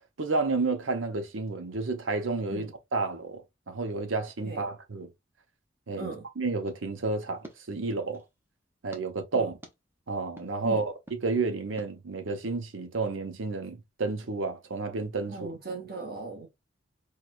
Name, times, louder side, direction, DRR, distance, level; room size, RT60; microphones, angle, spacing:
voice 1, 0.2-5.1 5.9-6.1 6.4-8.2 8.8-9.5 10.1-10.9 11.2-15.3, right 3 dB, 85° right, 0.8 m, -31 dB
sound 1, 6.6-8.4 8.9-9.0 9.6-9.7 10.4-10.5 11.1-11.2 11.8-11.9, right 1 dB, 10° right, 0.6 m, -50 dB
voice 2, 15.3-16.5, right 3 dB, 50° right, 1.2 m, -38 dB
4.6 x 2.3 x 2.4 m
head